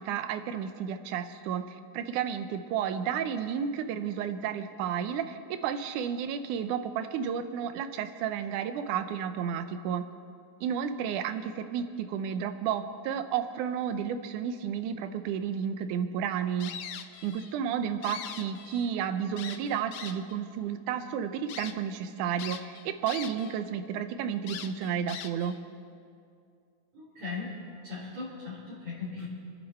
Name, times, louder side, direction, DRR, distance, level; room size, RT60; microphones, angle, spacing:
voice 1, 0.0-10.0 10.6-16.7 17.2-25.6, right 8 dB, 80° right, 9 dB, 2.3 m, -32 dB
sound 1, 16.6-17.5 17.9-18.9 19.4-20.4 20.9-21.0 21.5-21.7 22.4-23.6 23.9-24.0 24.5-25.6, left 9 dB, 75° left, 1.9 m, -41 dB
voice 2, 26.9-27.5 27.8-29.3, left 4 dB, 60° right, -11 dB, 4.8 m, -38 dB
28.5 x 9.8 x 4.5 m, 2.4 s
omnidirectional pair, 3.5 m